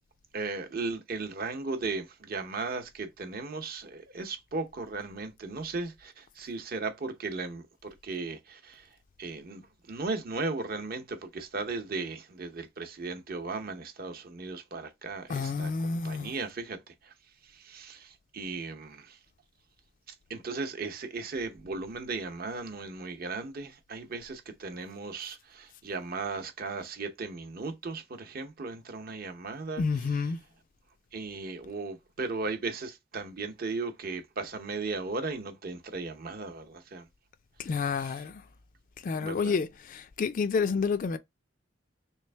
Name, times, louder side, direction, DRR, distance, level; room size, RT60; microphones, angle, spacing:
voice 1, 0.3-8.9 9.2-9.6 9.9-17.1 17.4-19.2 20.3-29.8 31.1-37.1 38.0-38.1 39.1-39.6, right 3 dB, 50° right, 0.7 m, -36 dB
voice 2, 15.3-16.3 29.8-30.4 37.6-38.4 39.0-41.2, left 5 dB, 45° left, 0.3 m, -29 dB
3.3 x 3.1 x 3.3 m
head